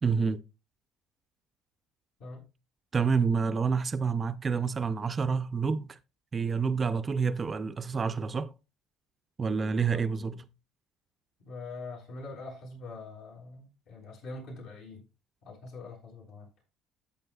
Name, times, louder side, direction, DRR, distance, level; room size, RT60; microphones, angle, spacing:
voice 1, 0.0-0.4 2.9-6.0 6.3-8.5 9.4-10.3, right 5 dB, 30° right, 0.5 m, -28 dB
voice 2, 9.8-10.4 11.4-15.1 15.4-16.7, left 3 dB, 70° left, 6.8 m, -44 dB
13.5 x 8.7 x 2.3 m
cardioid pair, 110°, 0 cm